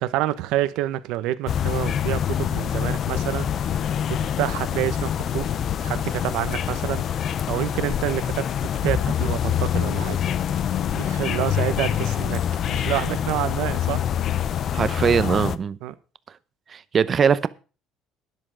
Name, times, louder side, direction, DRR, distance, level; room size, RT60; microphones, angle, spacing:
voice 1, 0.0-3.5 4.1-5.5 5.8-8.5 8.8-10.2 10.9-14.0 15.8-15.9, right 14 dB, 80° right, 1.2 m, -28 dB
sound 1, 1.5-15.6, left 9 dB, 45° left, 0.8 m, -25 dB
voice 2, 14.7-15.8 16.7-17.5, right 7 dB, 35° right, 0.8 m, -21 dB
12.5 x 10.5 x 5.0 m
cardioid pair, 135°, 0 cm